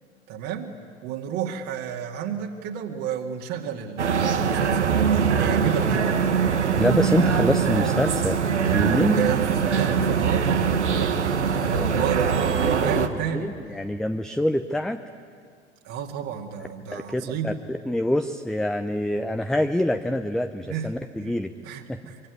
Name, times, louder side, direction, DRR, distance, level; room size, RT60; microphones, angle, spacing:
voice 1, 0.3-0.7 1.0-5.0 5.3-6.2 9.2-13.5 15.8-17.6 20.6-20.9 21.2-21.3 21.6-22.2, right 7 dB, 45° right, 1 dB, 2.4 m, -32 dB
sound 1, 4.0-13.1, right 6 dB, 75° right, 1.5 m, -22 dB
voice 2, 6.8-8.4 8.7-9.2 11.7-11.9 12.8-15.0 16.9-21.5 21.9-22.0, left 1 dB, ahead, 8 dB, 0.7 m, -26 dB
24.5 x 24.0 x 9.5 m, 2.1 s
figure-of-eight pair, 80°, 35 cm